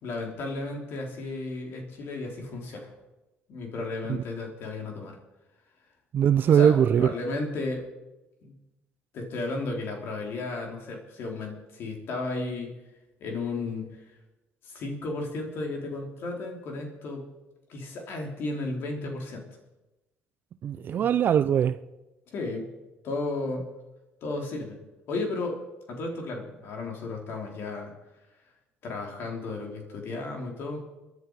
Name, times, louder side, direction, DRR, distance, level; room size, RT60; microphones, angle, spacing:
voice 1, 0.0-2.9 3.5-5.2 6.4-7.9 8.4-8.5 9.1-12.8 13.2-14.2 14.6-17.2 17.7-19.5 20.9-21.1 22.3-22.7 23.0-23.7 24.2-25.6 25.9-27.9 28.8-30.8, left 3 dB, 65° left, 3.5 m, -34 dB
voice 2, 6.1-7.1 20.6-21.8, right 9 dB, 50° right, 0.5 m, -21 dB
22.5 x 10.5 x 4.8 m
cardioid pair, 105°, 4 cm